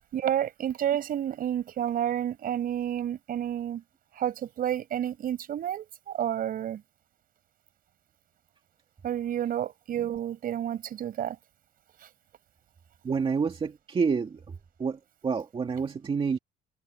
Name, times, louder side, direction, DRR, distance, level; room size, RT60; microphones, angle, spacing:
voice 1, 0.1-3.8 4.1-6.8 9.0-11.4, right 10 dB, 60° right, 6.1 m, -30 dB
voice 2, 13.0-16.4, right 5 dB, 30° right, 2.2 m, -29 dB
cardioid pair, 110°, 17 cm